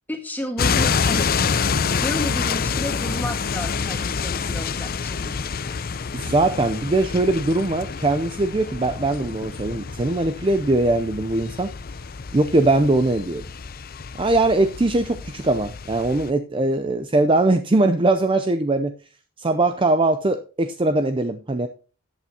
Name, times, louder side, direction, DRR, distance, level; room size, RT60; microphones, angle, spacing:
voice 1, 0.1-1.3 1.9-5.4, equal, 10° left, 5 dB, 1.6 m, -32 dB
sound 1, 0.6-16.3, left 5 dB, 45° left, 0.5 m, -27 dB
voice 2, 6.1-11.7 12.3-13.4 14.2-18.9 19.4-21.7, right 2 dB, 25° right, 8 dB, 0.5 m, -21 dB
13.5 x 8.3 x 2.8 m, 0.35 s
head